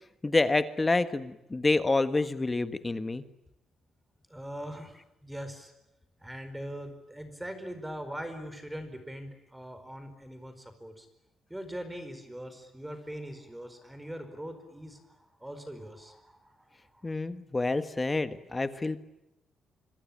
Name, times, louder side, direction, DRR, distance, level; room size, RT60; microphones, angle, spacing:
voice 1, 0.2-3.2 17.0-19.0, left 2 dB, 15° left, 11 dB, 1.5 m, -28 dB
voice 2, 4.3-5.0 5.2-5.7 6.2-11.1 11.5-17.1, equal, 5° right, 10 dB, 4.7 m, -41 dB
26.0 x 25.5 x 8.6 m, 0.87 s
cardioid pair, 140°, 0 cm